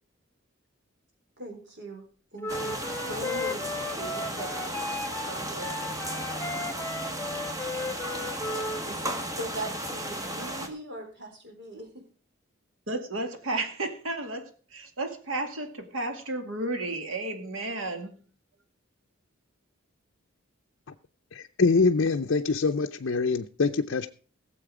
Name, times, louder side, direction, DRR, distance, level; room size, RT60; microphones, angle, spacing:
voice 1, 1.4-2.0 2.3-4.8 5.3-5.9 8.5-12.0, equal, 60° right, 3 dB, 4.2 m, -40 dB
Wind instrument woodwind instrument, 2.4-8.8, left 2 dB, 10° left, 0.5 m, -35 dB
sound 1, 2.5-10.7, right 1 dB, 15° right, 1.6 m, -35 dB
voice 2, 12.9-18.3, right 2 dB, 85° right, 5 dB, 2.3 m, -33 dB
voice 3, 21.3-24.1, left 4 dB, 65° left, 5 dB, 0.6 m, -24 dB
17.0 x 7.7 x 4.9 m, 0.41 s
head